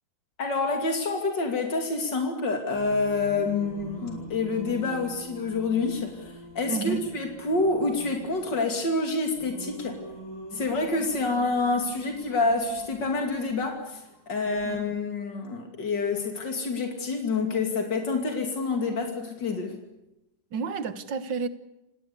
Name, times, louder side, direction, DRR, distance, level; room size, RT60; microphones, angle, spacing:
voice 1, 0.4-10.0 10.5-19.7, left 3 dB, 80° left, 4 dB, 3.4 m, -27 dB
Singing, 2.7-14.8, right 1 dB, 50° right, 6.7 m, -44 dB
voice 2, 6.7-7.0 14.6-14.8 20.5-21.5, right 5 dB, 85° right, 13 dB, 2.0 m, -30 dB
28.5 x 18.0 x 8.3 m, 0.90 s
omnidirectional pair, 1.9 m